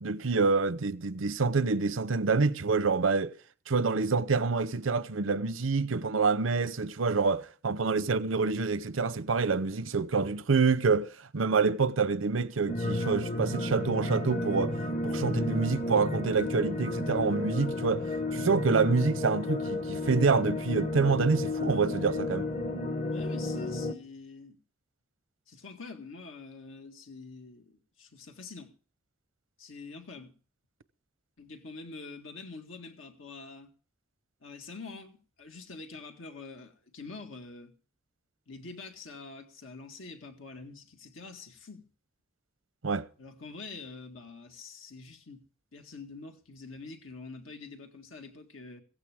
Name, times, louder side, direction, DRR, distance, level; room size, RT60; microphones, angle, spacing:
voice 1, 0.0-3.3 3.7-14.8 15.0-18.0 18.3-22.5 42.8-43.1, right 4 dB, 90° right, 0.7 m, -27 dB
sound 1, 12.7-23.9, left 2 dB, 40° left, 0.9 m, -32 dB
voice 2, 23.1-24.6 25.5-28.7 29.6-30.3 31.4-33.7 34.4-37.7 38.5-41.9 43.2-45.4 45.7-48.8, left 4 dB, 90° left, 1.9 m, -46 dB
16.0 x 15.0 x 3.5 m
head